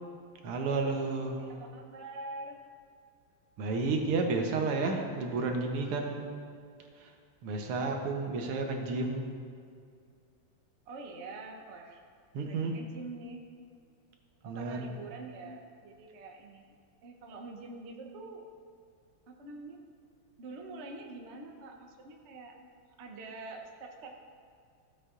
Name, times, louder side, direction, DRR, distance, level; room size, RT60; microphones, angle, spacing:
voice 1, 0.4-1.4 3.6-6.3 7.0-7.1 7.4-9.3 12.3-12.8 14.4-14.9, right 3 dB, 85° right, 3 dB, 1.9 m, -31 dB
voice 2, 1.4-2.6 10.9-12.0 12.4-13.4 14.4-16.7 17.0-18.4 19.3-19.8 20.4-22.6 23.0-24.1, right 3 dB, 55° right, 2 dB, 0.7 m, -45 dB
14.5 x 8.0 x 2.5 m, 2.2 s
omnidirectional pair, 2.4 m